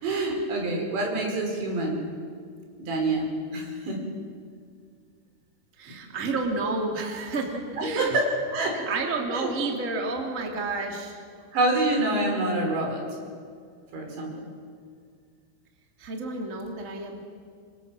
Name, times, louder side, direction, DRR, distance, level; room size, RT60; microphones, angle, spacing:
voice 1, 0.0-2.0 2.8-4.0 5.9-6.0 7.8-8.8 9.3-9.5 11.5-13.0 13.9-14.4, right 2 dB, 60° right, 1 dB, 7.1 m, -26 dB
voice 2, 5.8-8.1 8.8-11.2 16.0-17.2, right 3 dB, 20° right, 1 dB, 2.3 m, -30 dB
27.0 x 25.5 x 7.7 m, 2.1 s
omnidirectional pair, 5.8 m